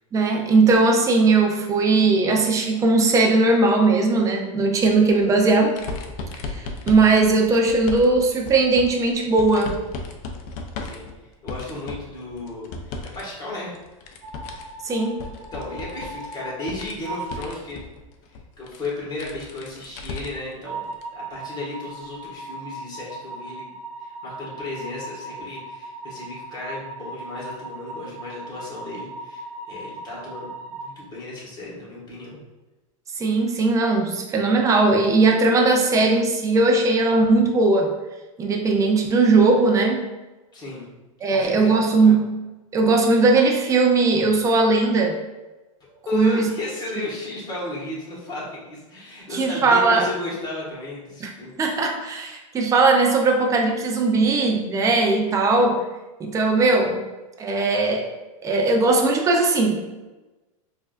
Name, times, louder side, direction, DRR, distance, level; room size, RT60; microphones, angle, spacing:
voice 1, 0.1-5.8 6.5-9.8 14.8-15.2 33.2-37.9 38.4-40.1 41.2-42.3 42.7-45.2 46.1-46.5 49.3-50.1 51.2-51.3 51.6-55.8 56.2-57.0 57.4-58.1 58.4-59.8, right 3 dB, 20° right, 2 dB, 0.5 m, -19 dB
sound 1, 4.7-13.2 13.5-20.5 20.9-21.0 22.2-22.3, left 3 dB, 50° left, 0.5 m, -36 dB
voice 2, 10.8-13.8 15.5-17.9 18.3-23.7 24.0-32.4 40.5-40.9 41.3-42.1 46.1-51.5, left 2 dB, 25° left, -5 dB, 1.5 m, -34 dB
sound 2, 14.2-16.7 17.0-17.4 20.7-30.9, right 2 dB, 70° right, 0.9 m, -38 dB
4.6 x 2.5 x 2.4 m, 1.1 s
hypercardioid pair, 120°, 18 cm